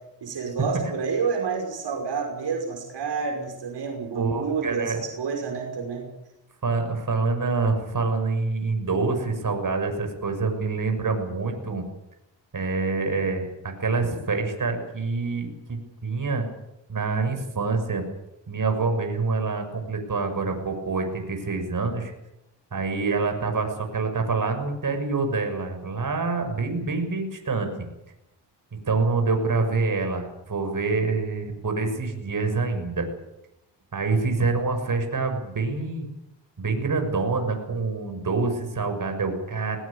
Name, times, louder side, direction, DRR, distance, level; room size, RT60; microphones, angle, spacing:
voice 1, 0.2-6.1, right 5 dB, 75° right, 2 dB, 5.8 m, -29 dB
voice 2, 4.1-5.0 6.6-11.8 12.5-13.5 13.8-16.4 16.9-18.0 18.5-22.1 22.7-27.8 28.9-33.1 33.9-36.1 36.6-39.8, right 4 dB, 50° right, 5 dB, 6.5 m, -26 dB
20.5 x 20.5 x 8.7 m, 0.89 s
cardioid pair, 75°, 43 cm